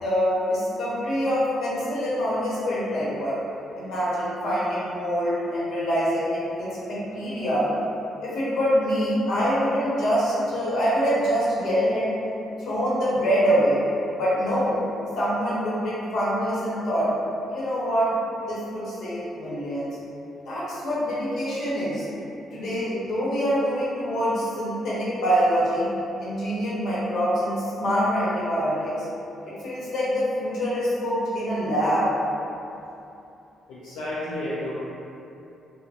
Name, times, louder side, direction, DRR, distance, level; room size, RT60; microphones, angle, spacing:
voice 1, 0.0-3.4 3.8-7.7 8.1-12.1 12.6-13.8 14.1-14.7 15.2-17.1 17.5-18.1 18.5-19.9 20.5-22.1 22.5-25.9 26.2-29.1 29.4-32.1, equal, 65° left, -8 dB, 0.9 m, -25 dB
voice 2, 33.7-34.7, left 1 dB, 85° left, -10 dB, 0.4 m, -31 dB
3.1 x 2.0 x 2.7 m, 2.8 s
cardioid pair, 90°, 0 cm